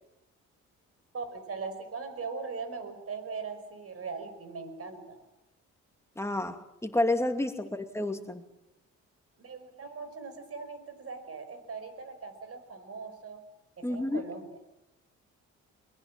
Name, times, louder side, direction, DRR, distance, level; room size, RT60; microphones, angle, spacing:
voice 1, 1.1-5.3 7.7-7.8 9.4-13.4 13.8-14.6, right 4 dB, 50° right, 10 dB, 5.3 m, -40 dB
voice 2, 6.2-8.4 13.8-14.3, left 1 dB, 10° left, 6 dB, 2.6 m, -30 dB
23.0 x 21.5 x 7.6 m, 0.84 s
cardioid pair, 90°, 30 cm